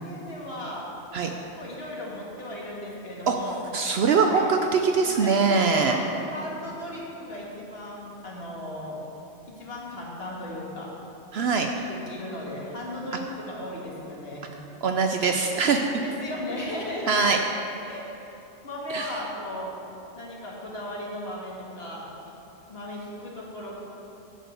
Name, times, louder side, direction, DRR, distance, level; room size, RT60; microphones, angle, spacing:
voice 1, 0.0-0.9 1.4-3.6 4.3-4.4 5.1-9.0 9.5-10.9 11.3-11.5 11.7-14.5 15.6-15.7 16.0-17.2 17.9-19.7 20.1-22.1 22.7-23.8, left 1 dB, 50° left, -4 dB, 1.9 m, -36 dB
voice 2, 3.7-6.0 11.3-11.7 14.8-16.0 17.1-17.4 18.9-19.1, right 5 dB, 65° right, 4 dB, 0.7 m, -22 dB
8.9 x 5.2 x 7.7 m, 3.0 s
omnidirectional pair, 1.3 m